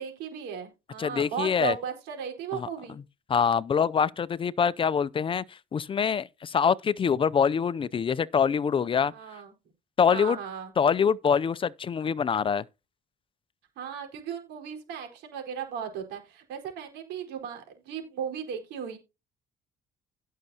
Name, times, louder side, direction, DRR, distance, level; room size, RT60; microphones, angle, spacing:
voice 1, 0.0-3.0 9.0-9.5 10.1-10.7 13.8-19.0, right 7 dB, 85° right, 4.5 m, -36 dB
voice 2, 1.0-1.7 2.6-2.7 3.3-9.1 10.0-10.4 10.8-12.6, left 7 dB, 30° left, 0.5 m, -25 dB
17.0 x 6.6 x 2.8 m
cardioid pair, 110°, 17 cm